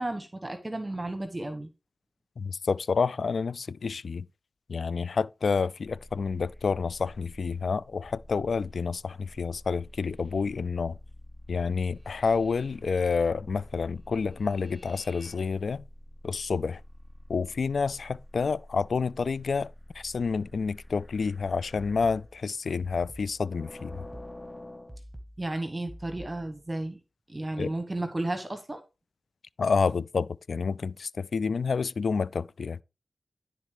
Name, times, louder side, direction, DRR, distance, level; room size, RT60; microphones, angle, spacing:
voice 1, 0.0-1.7 25.4-27.0 27.3-28.8, right 2 dB, 30° right, 1.2 m, -33 dB
voice 2, 2.4-4.3 4.7-11.0 11.5-15.8 16.2-16.8 17.3-19.7 20.0-24.0 27.6-27.7 29.6-32.8, left 5 dB, 80° left, 0.3 m, -29 dB
sound 1, 5.8-22.3 23.3-25.0, left 1 dB, 20° left, 1.1 m, -48 dB
sound 2, 21.8-26.7, equal, 15° right, 2.1 m, -47 dB
11.0 x 4.0 x 4.8 m
cardioid pair, 40°, 0 cm